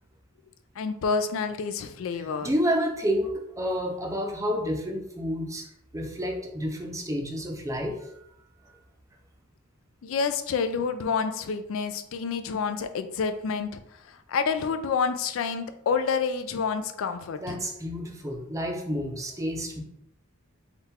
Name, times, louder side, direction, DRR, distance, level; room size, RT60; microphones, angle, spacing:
voice 1, 0.8-2.5 10.0-13.8 14.1-17.6, left 5 dB, 70° left, 9 dB, 0.3 m, -28 dB
voice 2, 2.4-3.3 3.6-5.7 5.9-8.2 17.4-19.8, equal, 15° right, 2 dB, 0.6 m, -29 dB
3.7 x 2.4 x 4.2 m, 0.78 s
head